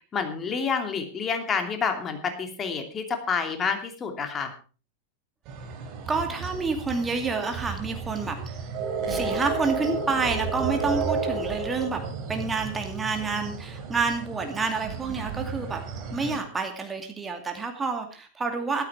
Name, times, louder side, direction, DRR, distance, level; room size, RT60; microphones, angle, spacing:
voice 1, 0.1-4.5, left 6 dB, 25° left, 6 dB, 2.8 m, -28 dB
sound 1, 5.5-16.4, right 5 dB, 40° right, 3.7 m, -32 dB
voice 2, 6.1-8.6 9.1-12.0 12.3-15.8 16.1-18.8, right 4 dB, 15° right, 4 dB, 2.4 m, -28 dB
14.5 x 13.0 x 4.8 m, 0.37 s
figure-of-eight pair, 90°, 0 cm